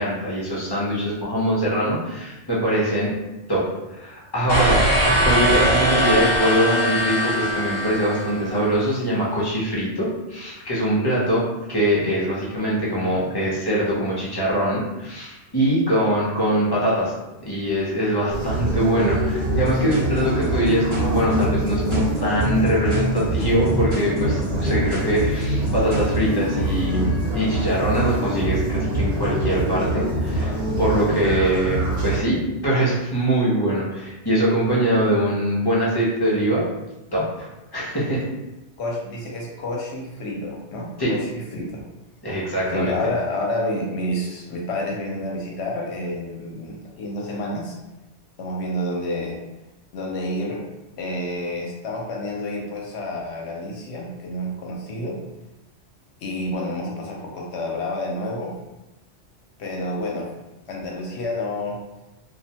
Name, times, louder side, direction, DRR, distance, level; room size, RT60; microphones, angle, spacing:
voice 1, 0.0-3.1 3.5-4.8 5.2-17.1 17.4-32.4 32.6-36.7 37.1-38.2 41.0-41.1 42.2-43.0, right 1 dB, 25° left, -7 dB, 0.5 m, -23 dB
sound 1, 4.5-8.7, equal, 45° left, 1.0 m, -21 dB
sound 2, 18.3-32.2, right 1 dB, 65° right, 1.1 m, -25 dB
sound 3, 19.4-26.2, left 1 dB, 35° right, 1.3 m, -28 dB
voice 2, 38.8-41.8 42.7-47.8 48.4-49.4 49.9-50.6 51.0-55.2 56.2-58.5 59.6-60.3 60.7-61.8, left 1 dB, 70° left, -1 dB, 0.8 m, -29 dB
2.4 x 2.1 x 2.8 m, 0.99 s
omnidirectional pair, 1.2 m